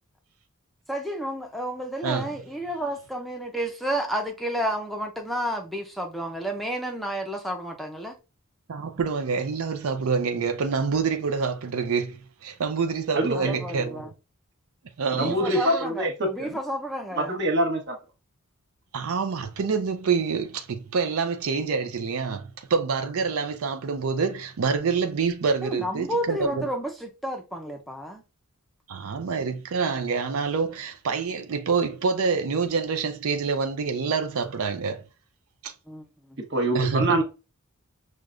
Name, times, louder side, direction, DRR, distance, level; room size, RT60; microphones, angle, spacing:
voice 1, 0.9-8.1 13.3-14.1 15.2-17.3 25.6-28.2 35.9-36.0, right 1 dB, ahead, 0.5 m, -31 dB
voice 2, 2.0-2.4 8.7-14.1 15.0-15.8 18.9-26.7 28.9-35.0 35.6-35.7 36.7-37.2, right 5 dB, 70° right, 0.5 m, -27 dB
voice 3, 13.1-13.5 15.1-16.6 17.1-18.0 36.5-37.2, right 1 dB, 55° right, 1.1 m, -25 dB
6.2 x 2.2 x 2.4 m
head